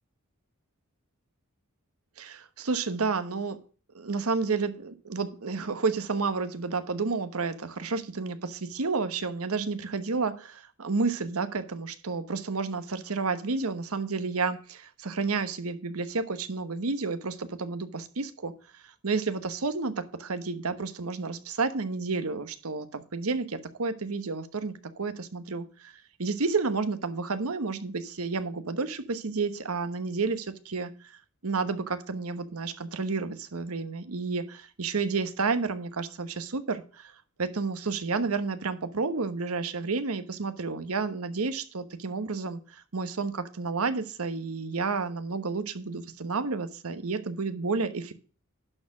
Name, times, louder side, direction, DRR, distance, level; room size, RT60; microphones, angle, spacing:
voice 1, 2.2-3.6 3.9-18.5 18.8-25.9 26.2-31.2 31.4-37.1 37.4-48.1, right 4 dB, 80° right, 11 dB, 1.0 m, -31 dB
11.5 x 4.5 x 6.1 m, 0.38 s
head